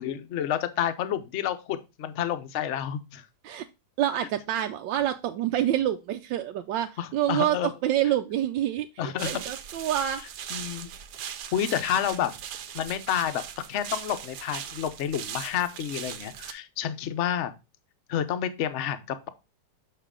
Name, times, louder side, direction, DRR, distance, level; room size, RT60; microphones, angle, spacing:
voice 1, 0.0-3.2 7.0-7.7 9.0-9.4 10.5-10.9 11.5-12.3 12.7-13.4 13.7-17.5 18.1-19.3, left 10 dB, 60° left, 11 dB, 0.8 m, -29 dB
voice 2, 4.0-10.2, right 12 dB, 90° right, 6 dB, 1.3 m, -27 dB
sound 1, 9.2-16.5, right 9 dB, 70° right, 1.3 m, -39 dB
6.5 x 5.7 x 3.6 m, 0.26 s
omnidirectional pair, 2.0 m